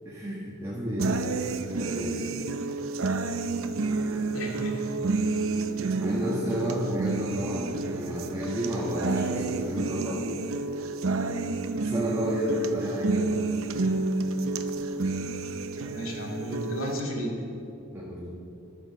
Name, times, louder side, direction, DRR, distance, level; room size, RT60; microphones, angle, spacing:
voice 1, 0.1-1.3 1.6-2.3 5.9-10.2 11.8-13.6 15.0-15.1 17.9-18.3, equal, 15° right, -6 dB, 1.7 m, -31 dB
sound 1, 1.0-17.0, right 3 dB, 80° right, 0.7 m, -30 dB
voice 2, 4.3-4.8 15.8-17.3, equal, 80° left, -1 dB, 2.4 m, -34 dB
12.0 x 9.3 x 6.5 m, 2.8 s
head